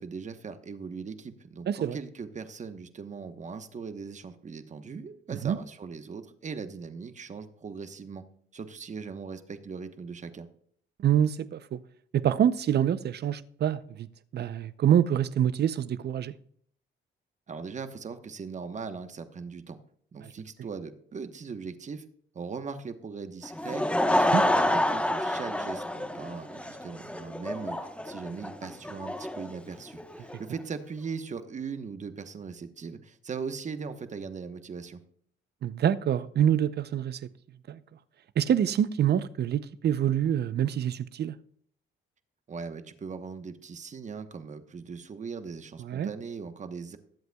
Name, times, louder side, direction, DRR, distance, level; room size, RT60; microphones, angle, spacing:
voice 1, 0.0-8.2 8.5-10.5 17.5-19.8 20.1-22.0 22.3-35.0 42.5-47.0, right 5 dB, 35° right, 1.1 m, -39 dB
voice 2, 1.7-2.0 5.4-5.6 11.0-11.8 12.1-14.1 14.3-16.3 20.2-20.3 24.3-24.4 35.6-37.2 37.7-37.8 38.4-41.4 45.8-46.1, right 10 dB, 55° right, 0.6 m, -26 dB
Laughter / Crowd, 23.4-30.4, left 1 dB, 5° left, 1.1 m, -28 dB
21.0 x 8.0 x 2.3 m
cardioid pair, 90°, 20 cm